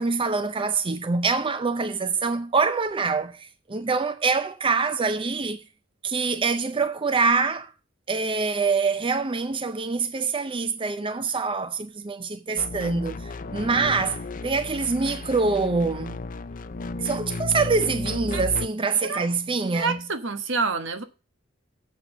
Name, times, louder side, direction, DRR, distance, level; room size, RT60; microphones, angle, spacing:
voice 1, 0.0-5.6 6.0-7.7 8.1-16.2 17.0-20.0, right 4 dB, 25° right, 0.5 m, -25 dB
sound 1, 12.6-18.7, left 3 dB, 45° left, 0.5 m, -34 dB
voice 2, 19.7-21.0, right 4 dB, 65° right, 1.2 m, -27 dB
7.5 x 6.2 x 7.0 m
head